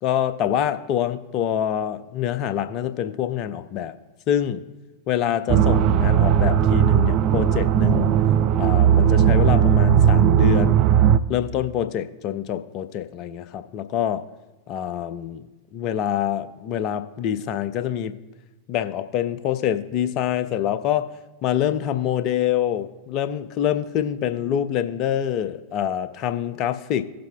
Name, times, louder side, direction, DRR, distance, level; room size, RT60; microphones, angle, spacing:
voice 1, 0.0-4.0 4.3-4.6 5.1-8.1 8.6-10.8 11.3-14.2 14.7-15.5 15.7-18.1 18.7-21.1 21.4-27.0, left 10 dB, 40° left, 12 dB, 0.5 m, -25 dB
sound 1, 5.5-11.2, right 9 dB, 40° right, 0.3 m, -17 dB
17.0 x 7.6 x 2.3 m, 1.1 s
figure-of-eight pair, 90°, 0 cm